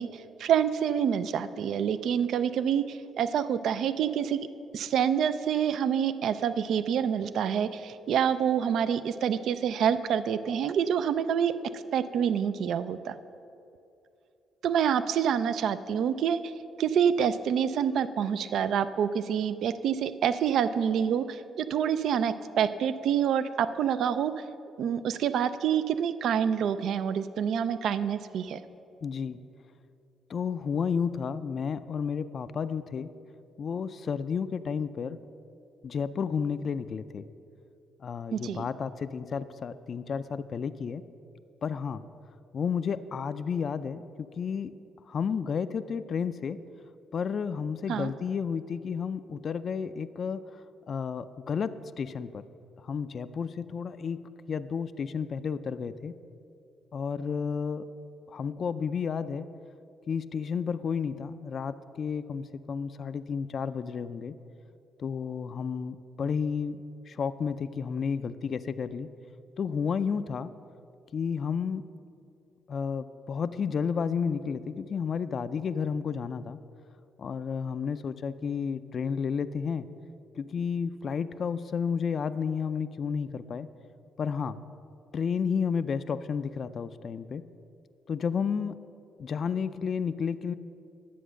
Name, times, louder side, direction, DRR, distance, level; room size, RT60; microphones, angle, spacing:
voice 1, 0.0-4.4 4.7-13.2 14.6-16.5 16.8-24.4 24.8-28.6 38.3-38.6 47.9-48.1, right 8 dB, 70° right, 13 dB, 0.4 m, -27 dB
voice 2, 29.0-29.4 30.3-33.1 33.6-35.2 35.8-37.2 38.0-41.0 41.6-42.0 42.5-44.7 45.1-46.6 47.1-50.4 50.9-51.7 52.0-52.4 52.8-56.1 56.9-57.8 58.3-59.5 60.1-64.3 65.0-66.8 67.1-69.1 69.6-70.5 71.1-71.8 72.7-76.6 77.2-79.9 80.4-83.7 84.2-84.6 85.1-87.4 88.1-88.7 89.2-90.5, left 6 dB, 50° left, 12 dB, 0.4 m, -31 dB
10.0 x 7.7 x 6.3 m, 2.7 s
cardioid pair, 90°, 0 cm